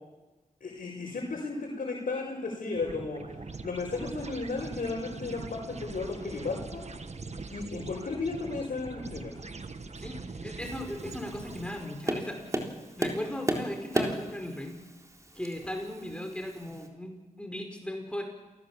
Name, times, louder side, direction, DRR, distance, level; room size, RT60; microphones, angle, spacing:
voice 1, 0.6-6.9 7.5-9.3, left 3 dB, 80° left, -4 dB, 5.6 m, -34 dB
sound 1, 2.8-12.2, right 3 dB, 55° right, 1.5 m, -42 dB
voice 2, 10.0-12.6 13.0-14.8 15.3-18.2, left 1 dB, 10° left, 3 dB, 5.0 m, -37 dB
Tap, 10.6-16.9, right 1 dB, 20° right, 3.8 m, -35 dB
28.5 x 19.0 x 7.4 m, 1.2 s
cardioid pair, 60°, 14 cm